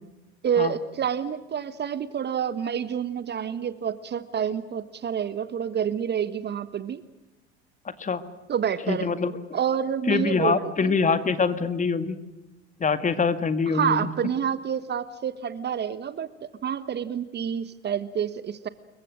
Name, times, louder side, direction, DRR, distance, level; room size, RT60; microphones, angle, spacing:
voice 1, 0.4-7.0 8.5-9.1 9.5-10.9 13.7-18.7, right 8 dB, 30° right, 14 dB, 1.3 m, -28 dB
voice 2, 8.9-9.3 10.1-12.2 12.8-14.1, left 5 dB, 20° left, 11 dB, 2.1 m, -24 dB
29.0 x 23.0 x 6.5 m, 1.1 s
figure-of-eight pair, 70°, 34 cm